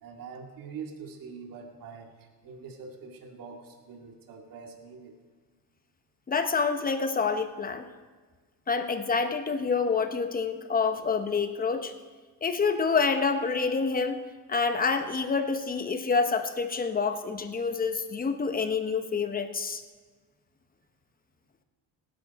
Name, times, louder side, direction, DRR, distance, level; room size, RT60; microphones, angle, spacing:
voice 1, 0.0-5.2, right 5 dB, 55° right, 2 dB, 2.2 m, -44 dB
voice 2, 6.3-7.9 8.7-11.9 12.4-14.2 14.5-19.8, left 5 dB, 20° left, 8 dB, 1.0 m, -27 dB
18.0 x 10.5 x 4.2 m, 1.4 s
cardioid pair, 115°, 39 cm